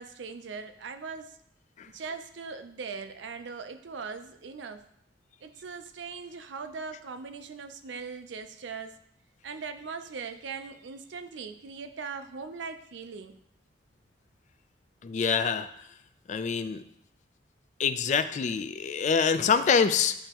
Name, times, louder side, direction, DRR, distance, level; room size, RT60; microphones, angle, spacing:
voice 1, 0.0-1.4 1.9-4.8 5.4-9.0 9.4-13.4, right 5 dB, 75° right, 9 dB, 0.5 m, -40 dB
voice 2, 15.0-15.7 16.3-16.8 17.8-20.1, left 6 dB, 40° left, 12 dB, 0.3 m, -25 dB
10.0 x 3.4 x 2.9 m, 0.73 s
head